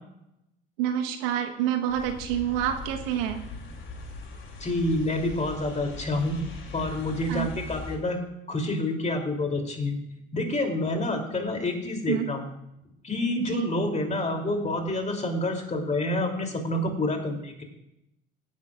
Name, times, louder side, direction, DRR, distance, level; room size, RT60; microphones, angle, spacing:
voice 1, 0.8-3.4 7.3-7.5 12.1-12.3 13.3-13.7, right 10 dB, 75° right, 5 dB, 1.3 m, -27 dB
sound 1, 1.9-8.0, left 3 dB, 40° left, 3.0 m, -41 dB
voice 2, 4.6-6.4 6.7-8.2 8.5-10.0 10.3-12.4 13.0-17.6, left 2 dB, 25° left, 3 dB, 3.0 m, -28 dB
17.0 x 10.5 x 2.5 m, 0.83 s
hypercardioid pair, 65°, 29 cm